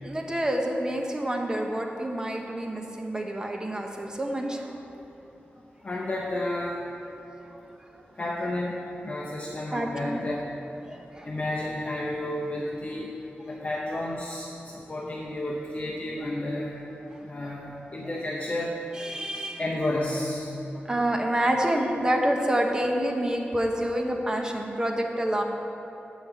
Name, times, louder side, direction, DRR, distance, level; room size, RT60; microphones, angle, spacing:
voice 1, 0.0-4.8 7.5-7.6 9.7-10.2 10.8-11.3 17.1-17.2 18.9-19.6 20.8-25.4, right 1 dB, 20° right, 1 dB, 0.9 m, -28 dB
voice 2, 5.8-6.8 8.2-8.8 9.0-10.5 11.2-13.1 13.5-14.5 14.9-16.8 17.2-18.7 19.6-20.5, left 1 dB, 35° left, -4 dB, 0.8 m, -31 dB
8.1 x 5.2 x 7.2 m, 3.0 s
wide cardioid pair, 120°, 4 cm